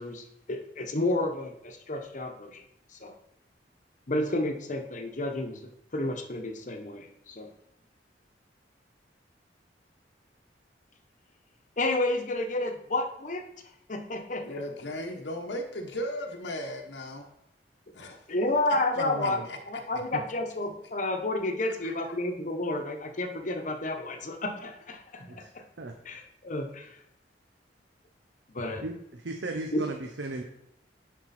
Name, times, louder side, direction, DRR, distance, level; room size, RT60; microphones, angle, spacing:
voice 1, 0.0-2.6 3.0-3.1 4.1-7.5 11.8-13.4 13.9-14.6 18.3-25.6 26.0-27.0 28.5-28.8 29.7-29.8, left 2 dB, 45° left, 5 dB, 1.0 m, -31 dB
voice 2, 14.4-17.3 17.9-18.2 19.2-19.6 21.8-22.3, left 1 dB, 85° left, 2 dB, 1.0 m, -37 dB
voice 3, 18.9-19.5 19.9-20.2 25.3-25.5 25.8-25.9 28.8-30.4, right 2 dB, 90° right, 3 dB, 0.8 m, -36 dB
10.5 x 4.5 x 4.2 m, 0.75 s
head